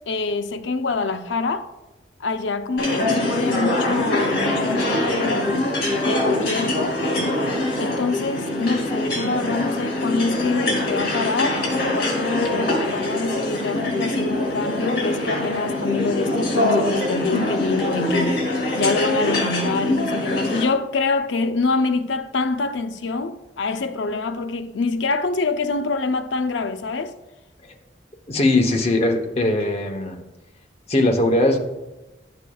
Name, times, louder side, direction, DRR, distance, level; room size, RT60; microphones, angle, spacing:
voice 1, 0.1-1.7 2.2-5.6 6.0-7.0 7.8-11.7 11.9-27.2, left 3 dB, 80° left, 0.5 m, -25 dB
sound 1, 2.8-20.6, left 1 dB, 55° left, 2.8 m, -23 dB
voice 2, 28.3-30.2 30.9-31.6, left 2 dB, 35° left, 0.9 m, -20 dB
12.0 x 6.7 x 2.3 m
head